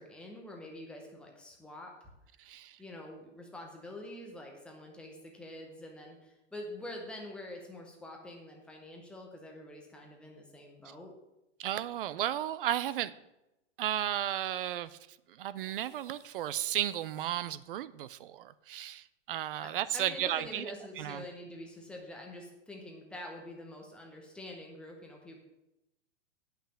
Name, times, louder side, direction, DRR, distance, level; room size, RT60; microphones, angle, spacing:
voice 1, 0.0-2.1 2.8-11.1 19.6-25.4, left 1 dB, 5° left, 0 dB, 0.7 m, -46 dB
voice 2, 2.5-2.8 11.6-13.1 13.8-15.0 15.4-20.7 21.0-21.2, right 12 dB, 50° right, 17 dB, 0.5 m, -34 dB
sound 1, 15.5-17.7, equal, 15° right, 4.1 m, -63 dB
8.9 x 5.7 x 7.3 m, 0.92 s
supercardioid pair, 170°, 37 cm